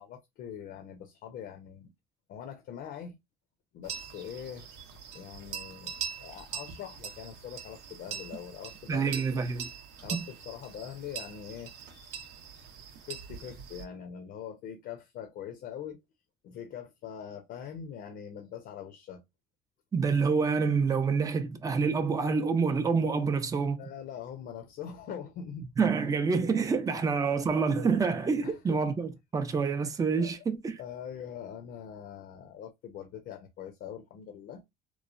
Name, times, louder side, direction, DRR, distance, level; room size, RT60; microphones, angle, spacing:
voice 1, 0.0-1.9 2.3-3.2 3.7-4.7 5.1-5.9 6.2-9.5 10.0-11.7 13.1-16.0 16.4-19.2 23.8-25.7 28.4-28.8 30.2-30.4 30.8-34.6, left 8 dB, 70° left, 0.6 m, -43 dB
sound 1, 3.8-13.8, right 8 dB, 85° right, 0.7 m, -42 dB
voice 2, 8.9-9.7 10.1-10.3 19.9-23.8 25.8-30.8, right 5 dB, 20° right, 0.4 m, -27 dB
3.1 x 2.0 x 2.4 m
cardioid pair, 110°, 17 cm